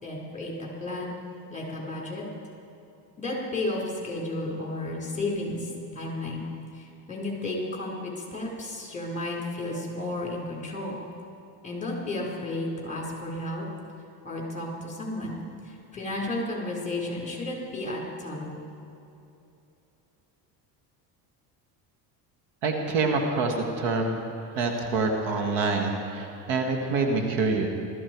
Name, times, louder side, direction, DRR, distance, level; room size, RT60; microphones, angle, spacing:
voice 1, 0.0-2.2 3.2-6.5 6.7-11.0 11.6-13.6 14.2-18.6, left 2 dB, 15° left, -2 dB, 4.9 m, -33 dB
voice 2, 22.6-24.2 24.6-27.7, right 3 dB, 80° right, 3 dB, 2.2 m, -26 dB
20.0 x 14.0 x 4.8 m, 2.8 s
supercardioid pair, 95°, 48 cm